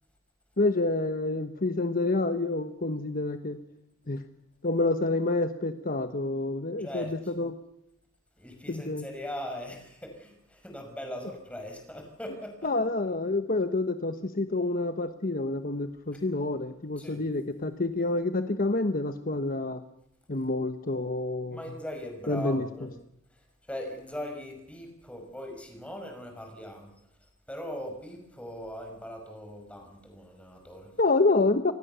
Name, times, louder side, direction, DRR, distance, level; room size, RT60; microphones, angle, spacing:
voice 1, 0.6-3.6 4.1-4.2 4.6-7.1 7.4-7.5 8.7-9.0 12.6-19.8 20.3-21.6 22.3-22.7 31.0-31.7, left 2 dB, 45° left, 9 dB, 1.1 m, -28 dB
voice 2, 6.8-7.3 8.4-12.7 17.0-17.2 21.5-23.0 23.3-26.9 27.2-30.9, left 1 dB, 5° left, 3 dB, 5.9 m, -40 dB
26.5 x 19.5 x 6.9 m, 0.80 s
head